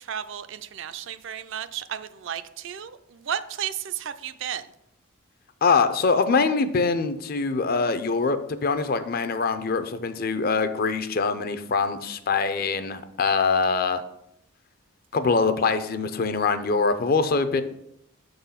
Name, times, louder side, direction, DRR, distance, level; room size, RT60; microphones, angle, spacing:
voice 1, 0.0-4.7, right 9 dB, 60° right, 12 dB, 0.4 m, -33 dB
voice 2, 5.6-14.0 15.1-17.6, left 4 dB, 45° left, 10 dB, 0.5 m, -23 dB
6.6 x 4.0 x 5.6 m, 0.77 s
head